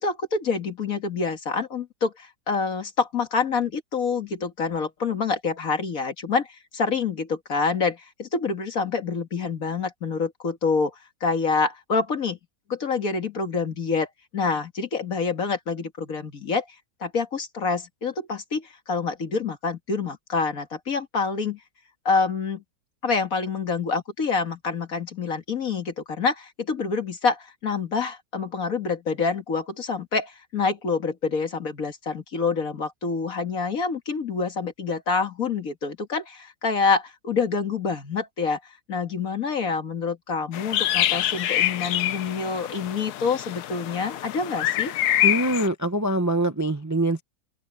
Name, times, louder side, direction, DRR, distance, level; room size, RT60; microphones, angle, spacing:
voice 1, 0.0-10.9 11.2-12.4 12.7-21.6 22.1-22.6 23.0-38.6 38.9-44.9, left 4 dB, 55° left, 2.3 m, -27 dB
sound 1, 40.5-45.7, left 13 dB, 70° left, 1.2 m, -26 dB
voice 2, 45.2-47.2, right 1 dB, 15° right, 0.8 m, -24 dB
open air
omnidirectional pair, 1.8 m